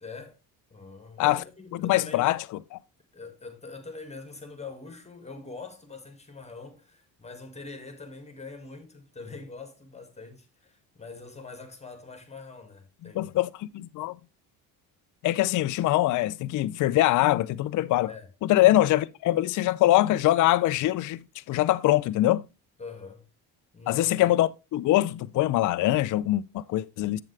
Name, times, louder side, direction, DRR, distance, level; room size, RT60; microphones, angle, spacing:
voice 1, 0.0-0.4 0.7-2.3 3.1-13.4 18.1-18.3 22.8-23.3 23.7-24.3, left 4 dB, 15° left, 1.9 m, -43 dB
voice 2, 1.7-2.4 2.7-2.8 13.0-14.2 15.2-18.1 18.4-22.4 23.9-27.2, left 15 dB, 50° left, 0.5 m, -23 dB
7.8 x 7.3 x 3.3 m
cardioid pair, 90°, 40 cm